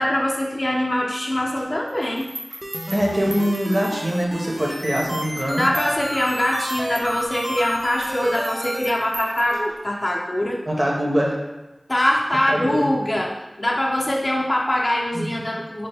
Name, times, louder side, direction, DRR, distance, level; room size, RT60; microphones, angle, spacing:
voice 1, 0.0-2.3 5.6-10.6 11.9-15.9, left 1 dB, 35° left, -2 dB, 0.5 m, -23 dB
sound 1, 1.6-4.4 4.8-10.0, right 1 dB, 80° right, 0.7 m, -40 dB
sound 2, 2.6-8.9, equal, 20° right, 0.4 m, -30 dB
voice 2, 2.9-5.6 10.7-11.3 12.5-12.9 15.1-15.5, equal, 40° right, -2 dB, 0.8 m, -23 dB
4.1 x 2.1 x 3.3 m, 1.1 s
wide cardioid pair, 55°, 0 cm